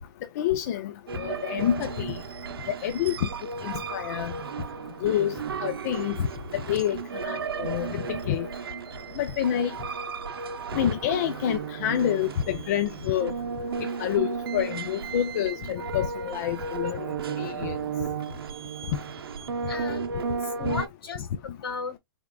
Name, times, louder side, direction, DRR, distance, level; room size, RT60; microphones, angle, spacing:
voice 1, 0.4-2.2 2.8-3.3 3.6-4.3 5.0-5.4 5.6-6.2 6.7-8.5 9.2-9.7 10.7-13.3 13.8-17.1 17.4-17.8 20.7-20.8, left 11 dB, 45° left, 0.5 m, -28 dB
sound 1, 1.1-20.9, right 5 dB, 85° right, 0.7 m, -34 dB
voice 2, 19.7-22.0, left 4 dB, 85° left, 2.2 m, -36 dB
3.5 x 3.5 x 2.2 m
hypercardioid pair, 150°, 12 cm